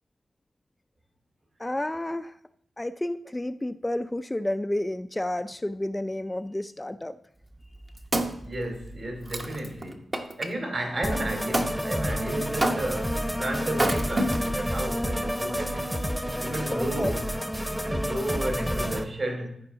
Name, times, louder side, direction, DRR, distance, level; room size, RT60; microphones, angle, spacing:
voice 1, 1.6-2.4 2.8-7.2 16.7-17.1, left 1 dB, 15° left, 0.3 m, -30 dB
Wood, 7.5-10.5 11.5-11.8 12.6-13.1 13.7-14.7 15.3-15.4, right 1 dB, 35° right, 1.0 m, -29 dB
voice 2, 8.4-10.1 10.4-15.9 16.4-17.2 17.7-19.6, right 1 dB, 60° right, 3.8 m, -33 dB
sound 1, 11.0-19.0, equal, 5° right, 0.9 m, -29 dB
14.0 x 4.8 x 3.9 m
cardioid pair, 60°, 0 cm